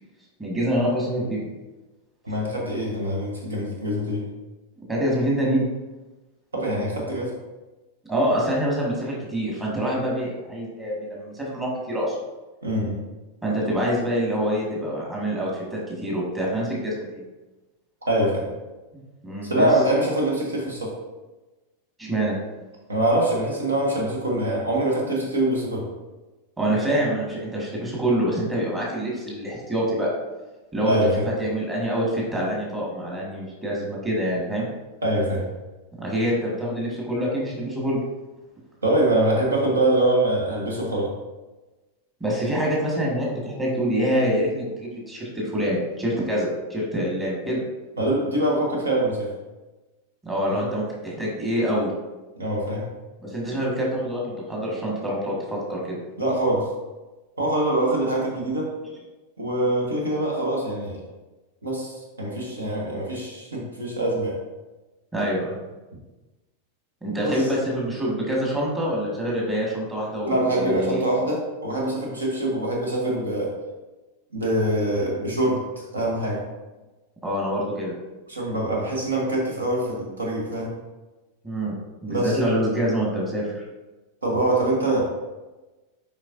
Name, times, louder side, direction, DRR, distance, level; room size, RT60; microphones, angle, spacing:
voice 1, 0.4-1.5 4.9-5.7 8.1-12.2 13.4-17.2 19.2-19.7 22.0-22.4 26.6-30.1 30.7-31.0 31.4-34.7 36.0-38.0 42.2-47.6 50.2-51.9 53.2-56.0 65.1-65.5 67.0-71.0 77.2-77.9 81.4-81.7 82.0-83.6, equal, 15° right, -4 dB, 1.8 m, -26 dB
voice 2, 2.2-4.3 6.5-7.3 12.6-13.0 18.1-18.4 19.4-20.9 22.9-25.9 30.9-31.2 35.0-35.4 38.8-41.1 48.0-49.3 50.5-50.7 52.4-52.8 56.2-56.7 57.4-58.7 59.4-61.0 61.6-64.3 67.2-67.4 70.3-73.5 74.3-75.6 75.9-76.4 78.3-80.7 82.1-82.4 84.2-85.0, right 1 dB, 75° right, -2 dB, 1.3 m, -24 dB
7.3 x 5.1 x 2.6 m, 1.1 s
figure-of-eight pair, 90°, 0 cm